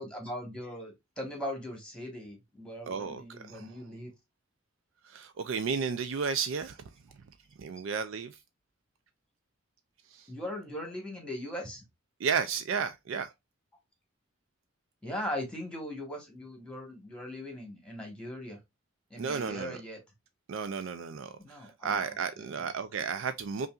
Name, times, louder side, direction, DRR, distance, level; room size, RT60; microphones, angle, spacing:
voice 1, 0.0-4.1 10.3-11.9 15.0-18.6 19.1-20.0 21.4-22.7, left 1 dB, 5° left, 1.4 m, -40 dB
voice 2, 2.9-3.8 5.0-6.8 7.6-8.4 10.1-10.3 12.2-13.3 19.2-19.8 20.5-23.7, right 6 dB, 65° right, 0.4 m, -33 dB
5.3 x 2.5 x 2.4 m
head